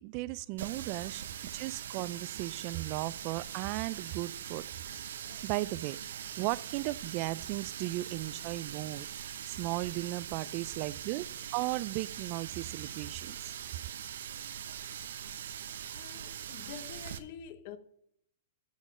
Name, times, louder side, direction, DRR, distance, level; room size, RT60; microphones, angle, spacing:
voice 1, 0.0-1.2 1.5-4.6 5.4-6.0 6.4-11.3 11.5-13.5, right 19 dB, 40° right, 0.4 m, -36 dB
Water tap faucet, 0.6-17.2, right 9 dB, 70° right, 0.9 m, -42 dB
voice 2, 15.9-17.8, left 8 dB, 50° left, 1.2 m, -47 dB
14.0 x 5.2 x 7.3 m
hypercardioid pair, 130°, 0 cm